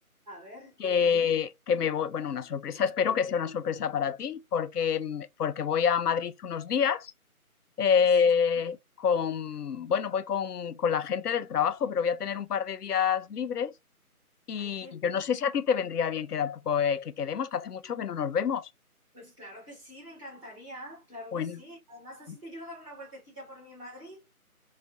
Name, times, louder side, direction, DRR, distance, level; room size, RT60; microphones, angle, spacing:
voice 1, 0.3-1.4 7.9-8.2 8.5-8.6 14.6-15.2 19.1-24.2, equal, 20° right, 1.9 m, -46 dB
voice 2, 0.8-7.1 7.8-8.8 9.0-13.7 14.5-18.7 21.3-21.6, left 7 dB, 90° left, 0.5 m, -27 dB
4.6 x 2.1 x 2.6 m
figure-of-eight pair, 170°, 45 cm